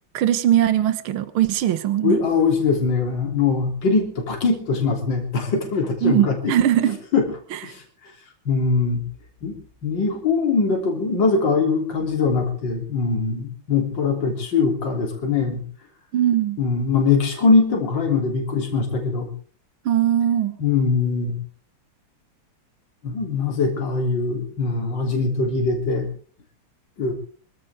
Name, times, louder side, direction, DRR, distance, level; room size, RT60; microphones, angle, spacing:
voice 1, 0.1-2.2 6.0-7.0 7.5-7.6 16.1-16.6 19.9-20.6, right 11 dB, 75° right, 12 dB, 1.9 m, -20 dB
voice 2, 2.0-6.5 7.1-7.2 7.6-7.8 8.5-9.0 9.4-9.6 9.8-15.6 16.6-19.3 20.6-21.3 23.0-26.1 27.0-27.1, left 4 dB, 55° left, 2 dB, 4.0 m, -22 dB
24.5 x 15.0 x 3.7 m, 0.43 s
omnidirectional pair, 2.4 m